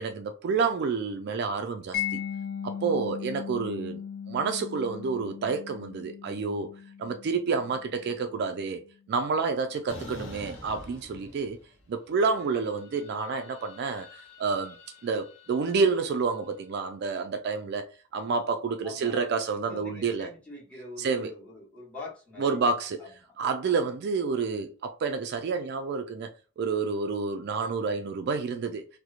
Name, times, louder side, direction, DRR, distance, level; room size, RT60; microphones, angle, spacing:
voice 1, 0.0-2.2 2.6-4.0 4.3-6.7 7.0-8.8 9.1-11.6 11.9-14.1 14.4-14.8 15.0-20.3 21.0-21.3 22.4-23.0 23.4-26.3 26.6-28.9, right 4 dB, 55° right, 0.3 m, -29 dB
Mallet percussion, 1.9-8.7, left 8 dB, 50° left, 0.6 m, -38 dB
sound 1, 9.9-11.8 12.2-16.5, left 1 dB, 85° left, 0.9 m, -47 dB
voice 2, 18.8-19.2 19.7-22.6 23.0-23.3 23.7-23.8, left 3 dB, 5° left, 1.0 m, -44 dB
2.9 x 2.1 x 2.4 m
head